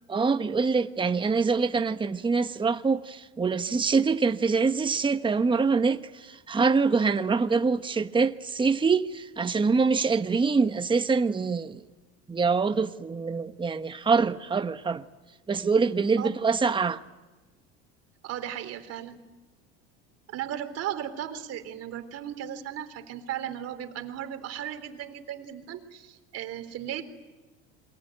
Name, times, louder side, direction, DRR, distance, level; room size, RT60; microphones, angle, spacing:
voice 1, 0.1-11.8 12.3-15.0 15.5-17.0, right 4 dB, 15° right, 1.1 m, -25 dB
voice 2, 18.2-19.2 20.3-27.0, right 10 dB, 50° right, 3.8 m, -36 dB
28.0 x 23.0 x 9.2 m
supercardioid pair, 105°, 31 cm